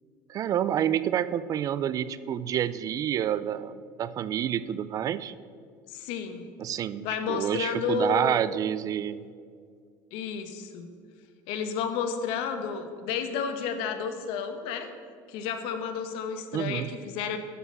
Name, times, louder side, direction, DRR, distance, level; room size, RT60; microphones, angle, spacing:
voice 1, 0.3-5.3 6.6-9.2 16.5-16.9, right 10 dB, 40° right, 16 dB, 0.4 m, -28 dB
voice 2, 5.9-6.5 7.0-8.4 10.1-10.9 11.5-14.9 15.3-17.4, left 6 dB, 75° left, 7 dB, 1.3 m, -31 dB
12.0 x 5.4 x 7.7 m, 2.1 s
cardioid pair, 125°, 9 cm